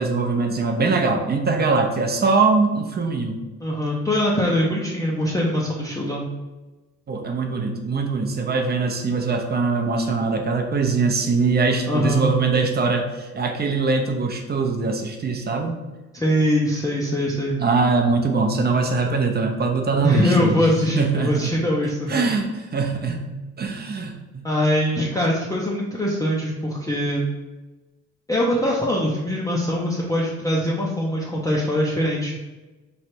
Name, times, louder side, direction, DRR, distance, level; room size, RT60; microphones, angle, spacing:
voice 1, 0.0-3.4 7.1-15.8 17.0-17.1 17.6-20.7 20.9-21.5 22.1-23.3 23.6-24.5, right 4 dB, 35° right, 3 dB, 0.6 m, -22 dB
voice 2, 3.6-6.3 11.9-12.3 16.1-17.6 20.0-22.3 24.4-27.3 28.3-32.3, left 1 dB, 10° left, -5 dB, 0.6 m, -22 dB
3.2 x 2.4 x 4.4 m, 1.1 s
cardioid pair, 90°, 30 cm